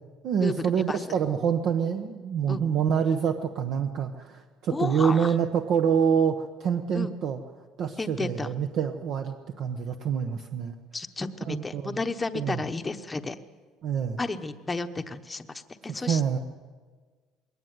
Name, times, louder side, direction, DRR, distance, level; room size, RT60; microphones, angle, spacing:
voice 1, 0.2-7.4 7.8-10.7 11.4-12.0 12.3-12.6 13.8-14.2 15.9-16.4, right 7 dB, 50° right, 6 dB, 1.1 m, -26 dB
voice 2, 4.7-5.3 6.9-7.1 8.0-8.5 10.9-13.4 14.2-16.4, left 3 dB, 15° left, 8 dB, 1.0 m, -32 dB
21.5 x 18.0 x 9.5 m, 1.5 s
cardioid pair, 145°, 0 cm